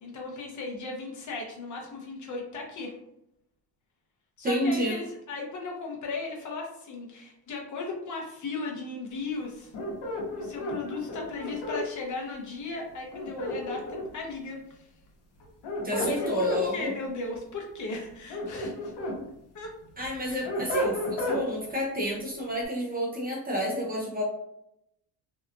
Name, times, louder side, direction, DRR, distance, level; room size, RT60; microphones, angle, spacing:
voice 1, 0.0-2.9 4.4-9.7 10.4-14.9 16.0-16.5 16.7-18.9 19.5-19.7 20.2-20.4, left 3 dB, 45° left, 0 dB, 0.7 m, -36 dB
voice 2, 4.4-5.0 15.8-16.9 20.0-24.2, equal, 25° right, -2 dB, 0.5 m, -29 dB
sound 1, 9.7-11.8 13.1-14.2 15.4-16.6 18.1-19.2 19.6-21.4, left 1 dB, 80° left, 0.9 m, -32 dB
2.8 x 2.2 x 2.4 m, 0.80 s
cardioid pair, 155°, 41 cm